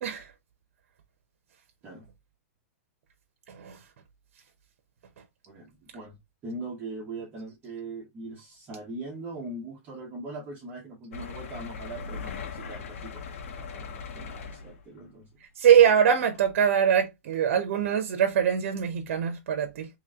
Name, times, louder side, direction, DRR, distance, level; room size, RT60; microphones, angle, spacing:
voice 1, 0.0-0.3 3.5-3.8 15.6-19.9, right 8 dB, 65° right, 0.8 m, -23 dB
voice 2, 5.5-6.2 6.4-15.3, right 2 dB, 20° right, 1.0 m, -41 dB
sound 1, 11.1-15.0 15.8-16.0 16.3-16.4, left 5 dB, 70° left, 1.0 m, -39 dB
3.1 x 3.1 x 3.6 m
supercardioid pair, 160°, 7 cm